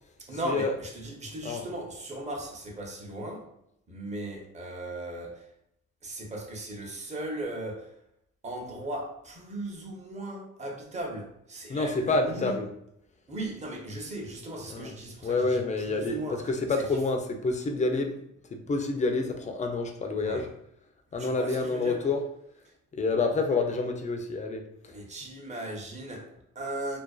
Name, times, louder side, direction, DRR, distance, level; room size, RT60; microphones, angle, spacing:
voice 1, 0.2-3.5 3.9-5.5 6.0-7.9 8.4-12.5 13.3-15.6 15.8-16.4 16.7-16.8 20.2-20.5 21.2-22.0 24.9-27.0, right 1 dB, 25° right, 0.7 m, -37 dB
voice 2, 11.7-12.7 14.7-14.9 15.2-18.2 18.5-20.5 21.1-22.2 22.9-24.9, left 3 dB, 25° left, 0.4 m, -28 dB
2.5 x 2.2 x 2.3 m
cardioid pair, 90°, 30 cm